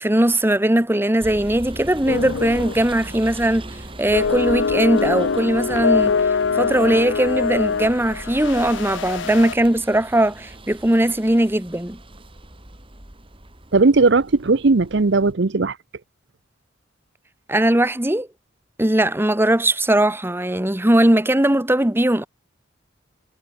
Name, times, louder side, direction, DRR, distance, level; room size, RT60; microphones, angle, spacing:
voice 1, 0.0-6.1 6.5-12.0 17.5-18.3 18.8-22.3, right 1 dB, 10° right, 1.2 m, -19 dB
sound 1, 1.2-15.3, right 1 dB, 30° right, 3.4 m, -40 dB
sound 2, 2.1-2.9 3.2-3.4 4.1-9.5, left 5 dB, 70° left, 0.6 m, -23 dB
voice 2, 13.7-15.8, right 3 dB, 65° right, 0.7 m, -17 dB
head